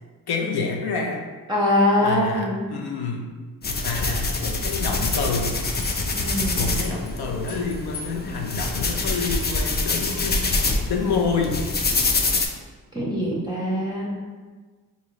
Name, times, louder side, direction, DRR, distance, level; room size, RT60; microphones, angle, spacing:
voice 1, 0.3-1.2 2.0-3.3 3.7-5.6 6.6-10.5 10.9-11.6, left 4 dB, 80° left, 1 dB, 0.6 m, -28 dB
voice 2, 1.5-2.6 6.1-6.7 12.9-14.1, left 1 dB, 10° right, -5 dB, 0.6 m, -23 dB
sound 1, 3.6-12.5, left 3 dB, 30° left, 0.4 m, -25 dB
sound 2, 5.2-7.1 7.5-8.4 8.7-8.8 9.1-9.9, left 3 dB, 55° left, 1.1 m, -39 dB
3.7 x 2.6 x 3.0 m, 1.4 s
cardioid pair, 80°, 38 cm